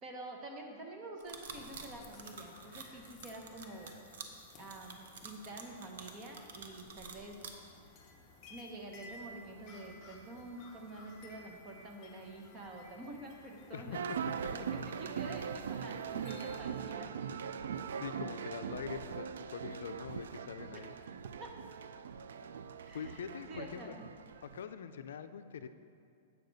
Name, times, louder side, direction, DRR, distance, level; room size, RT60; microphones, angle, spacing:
voice 1, 0.0-3.9 4.6-7.4 8.5-14.1 14.5-17.1 20.7-20.8 21.4-21.5 22.8-24.0, right 2 dB, 25° right, 1 dB, 0.9 m, -48 dB
sound 1, 1.2-7.5, right 5 dB, 70° right, 0.8 m, -49 dB
sound 2, 1.5-16.6, left 2 dB, 25° left, 0.8 m, -57 dB
sound 3, 13.9-24.6, right 7 dB, 90° right, 0.3 m, -41 dB
voice 2, 18.0-19.3 19.5-20.9 22.9-24.0 24.4-25.7, left 8 dB, 85° left, 10 dB, 0.4 m, -43 dB
8.1 x 6.6 x 4.0 m, 2.5 s
supercardioid pair, 165°, 0 cm